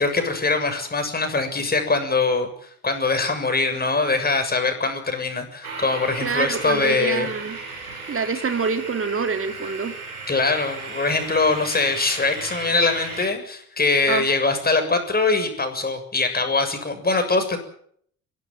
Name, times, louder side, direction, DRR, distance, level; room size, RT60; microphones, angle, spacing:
voice 1, 0.0-2.5 2.8-7.3 10.3-17.6, left 3 dB, 20° left, 6 dB, 7.2 m, -22 dB
sound 1, 5.6-13.3, right 3 dB, 85° right, 3.9 m, -35 dB
voice 2, 6.2-7.6 8.1-9.9 14.1-14.2, right 5 dB, 30° right, 7 dB, 3.3 m, -26 dB
23.5 x 17.0 x 9.3 m, 0.64 s
figure-of-eight pair, 55°, 42 cm